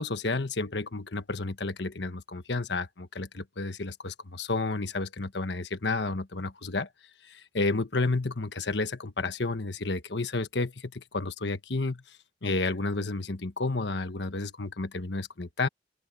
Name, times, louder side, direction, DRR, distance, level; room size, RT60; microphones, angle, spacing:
voice 1, 0.0-6.9 7.2-15.7, left 3 dB, 75° left, 1.3 m, -31 dB
open air
head